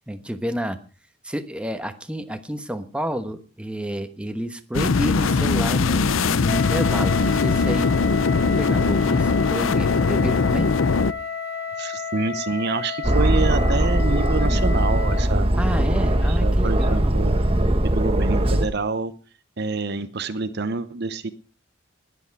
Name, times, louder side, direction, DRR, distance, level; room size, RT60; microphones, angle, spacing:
voice 1, 0.1-0.8 1.2-7.9 8.4-10.7 15.6-17.2, equal, 5° right, 7 dB, 1.1 m, -30 dB
sound 1, 4.7-11.1, left 4 dB, 85° left, 0.6 m, -21 dB
Wind instrument woodwind instrument, 6.4-15.3, left 6 dB, 50° left, 2.6 m, -31 dB
voice 2, 11.8-15.5 16.2-17.4 17.8-19.1 19.6-21.3, right 3 dB, 55° right, 12 dB, 0.8 m, -27 dB
Aircraft, 13.0-18.7, right 1 dB, 30° right, 1.2 m, -20 dB
20.0 x 8.1 x 4.7 m, 0.36 s
head